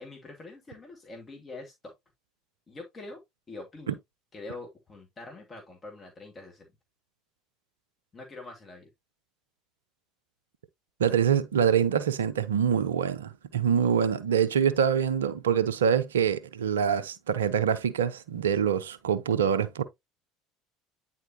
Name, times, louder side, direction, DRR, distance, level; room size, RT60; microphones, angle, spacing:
voice 1, 0.0-1.9 2.7-3.2 3.5-4.0 4.3-6.7 8.1-8.9, left 2 dB, 30° left, 2.0 m, -44 dB
voice 2, 11.0-19.8, right 8 dB, 75° right, 0.6 m, -25 dB
9.1 x 4.3 x 2.8 m
figure-of-eight pair, 65°, 0 cm